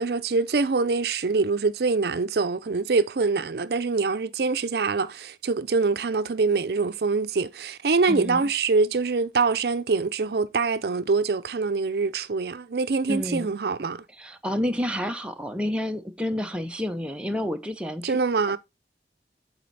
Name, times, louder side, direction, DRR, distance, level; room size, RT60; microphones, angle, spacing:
voice 1, 0.0-14.0 18.0-18.6, right 4 dB, 65° right, 0.5 m, -24 dB
voice 2, 8.1-8.5 13.1-13.5 14.2-18.2 18.5-18.6, left 1 dB, 5° right, 0.5 m, -29 dB
7.7 x 4.2 x 3.9 m
head